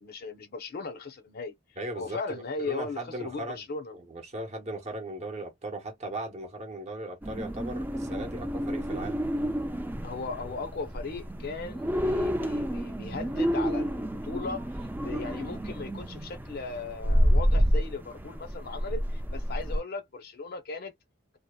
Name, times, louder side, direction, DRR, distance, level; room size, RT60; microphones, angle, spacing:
voice 1, 0.0-1.5 1.9-4.0 10.0-14.7 15.0-20.9, left 4 dB, 55° left, 0.6 m, -37 dB
voice 2, 1.8-2.2 2.6-3.6 3.9-9.2, right 1 dB, 35° right, 0.8 m, -37 dB
sound 1, 7.2-19.8, equal, 10° right, 0.3 m, -29 dB
2.7 x 2.1 x 2.2 m
head